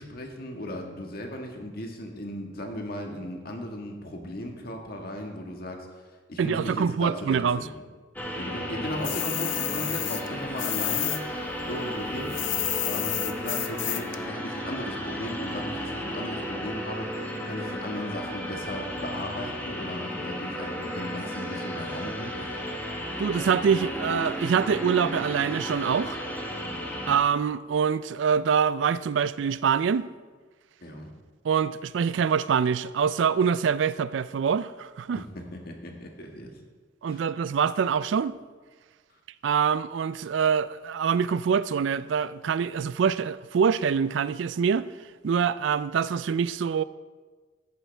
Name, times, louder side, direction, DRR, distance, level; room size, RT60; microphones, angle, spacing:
voice 1, 0.0-5.9 6.3-7.7 8.4-11.4 11.7-12.4 12.8-22.5 30.8-31.1 35.1-36.5 37.1-37.3, left 1 dB, 50° left, 1.6 m, -36 dB
voice 2, 6.4-7.6 23.2-26.2 27.1-30.1 31.4-35.2 37.0-38.4 39.4-44.9 45.2-46.8, right 6 dB, 70° right, 0.3 m, -25 dB
sound 1, 8.2-27.2, equal, 10° left, 1.3 m, -34 dB
sound 2, 9.0-11.2 11.5-14.2, left 15 dB, 75° left, 0.6 m, -30 dB
14.0 x 10.5 x 3.4 m
head